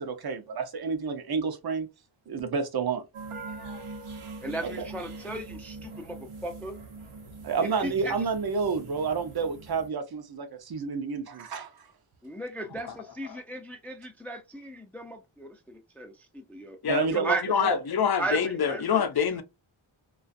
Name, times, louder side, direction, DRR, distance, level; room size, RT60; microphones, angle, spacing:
voice 1, 0.0-1.9 2.3-3.0 4.6-4.9 5.2-5.3 7.4-11.9 12.9-13.0 16.9-17.8, right 5 dB, 50° right, 0.7 m, -30 dB
sound 1, 3.1-9.9, right 3 dB, 80° right, 0.9 m, -43 dB
voice 2, 4.4-6.7 7.8-8.1 12.2-16.1 16.5-16.8 17.1-17.4 18.2-18.4 18.7-18.8, right 2 dB, 5° left, 0.4 m, -35 dB
voice 3, 12.6-13.4 16.8-19.4, left 7 dB, 50° left, 0.6 m, -27 dB
2.4 x 2.4 x 2.4 m
wide cardioid pair, 80°, 50 cm